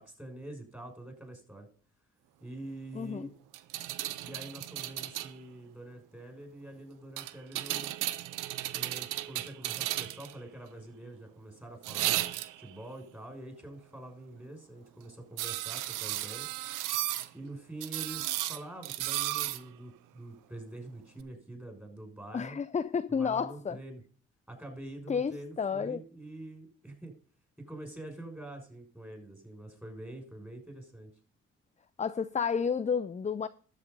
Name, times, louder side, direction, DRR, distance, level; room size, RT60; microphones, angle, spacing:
voice 1, 0.0-1.7 2.4-3.3 4.2-7.9 8.7-16.5 17.3-22.6 23.1-24.0 24.5-27.1 27.6-31.1, right 1 dB, 5° right, 6.4 m, -45 dB
voice 2, 2.9-3.3 22.3-23.8 25.1-26.0 32.0-33.5, left 6 dB, 25° left, 0.5 m, -31 dB
sound 1, 3.5-5.3 7.2-10.3 11.8-12.7 15.4-17.3 17.8-19.6 21.2-21.3, right 15 dB, 85° right, 0.7 m, -34 dB
12.0 x 7.4 x 5.4 m
supercardioid pair, 50°, 31 cm